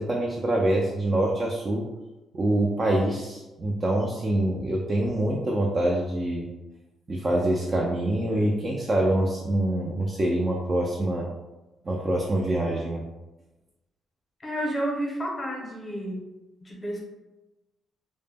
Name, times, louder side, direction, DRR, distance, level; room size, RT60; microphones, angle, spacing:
voice 1, 0.0-1.8 2.3-6.5 7.1-11.3 11.8-13.0, right 1 dB, 35° right, -1 dB, 0.3 m, -25 dB
voice 2, 14.4-16.2 16.6-17.0, right 1 dB, 25° left, -1 dB, 0.7 m, -30 dB
2.1 x 2.0 x 3.3 m, 1.1 s
cardioid pair, 90°, 0 cm